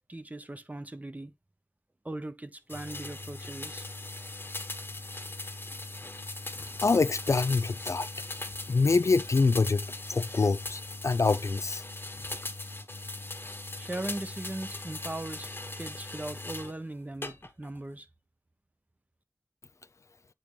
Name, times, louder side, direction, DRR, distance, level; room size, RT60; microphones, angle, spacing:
voice 1, 0.1-1.3 2.0-3.9 13.7-15.5 15.8-18.1, right 1 dB, 25° right, 1.0 m, -39 dB
sound 1, 2.7-16.7 17.2-17.8, left 2 dB, 40° left, 1.1 m, -39 dB
voice 2, 6.8-8.1 8.7-11.8, left 4 dB, 60° left, 0.4 m, -25 dB
8.7 x 3.6 x 3.2 m
wide cardioid pair, 50°, 6 cm